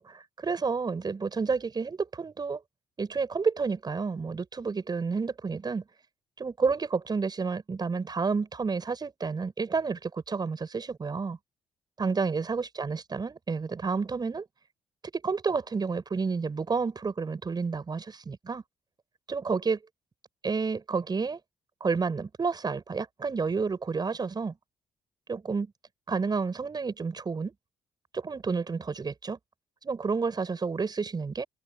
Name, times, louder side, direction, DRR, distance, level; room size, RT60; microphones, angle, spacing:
voice 1, 0.0-2.6 3.0-5.8 6.4-11.4 12.0-14.4 15.2-18.6 19.3-19.8 20.4-21.4 21.8-24.5 25.3-25.7 26.1-27.5 28.1-29.4 29.8-31.4, right 4 dB, 40° right, 6.8 m, -30 dB
hypercardioid pair, 50°, 11 cm